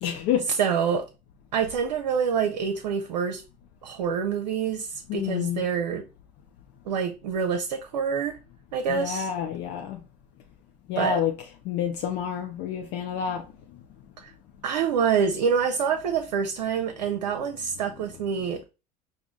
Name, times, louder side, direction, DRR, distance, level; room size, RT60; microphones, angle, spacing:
voice 1, 0.0-0.5 5.1-5.6 8.9-10.0 10.9-11.3 11.6-13.4, left 8 dB, 55° left, 0.7 m, -28 dB
voice 2, 0.6-1.1 1.5-3.4 3.8-6.0 6.9-8.4 8.7-9.3 11.0-11.2 14.2-14.3 14.6-18.6, right 6 dB, 75° right, 0.6 m, -26 dB
4.9 x 2.6 x 3.6 m
hypercardioid pair, 70°, 21 cm